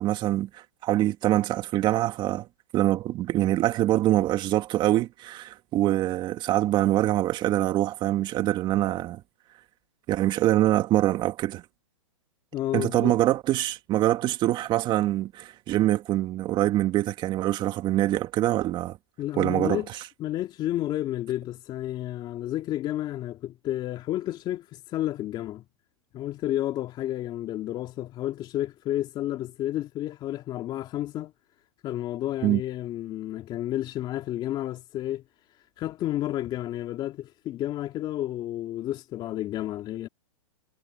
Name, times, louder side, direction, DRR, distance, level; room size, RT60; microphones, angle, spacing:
voice 1, 0.0-2.5 2.7-9.2 10.1-11.6 12.7-19.0 19.4-19.8 32.4-32.6, right 14 dB, 30° right, 2.2 m, -24 dB
voice 2, 12.5-13.1 19.2-25.6 26.1-31.3 31.8-35.2 35.8-40.1, left 13 dB, 25° left, 2.6 m, -31 dB
hypercardioid pair, 135°, 17 cm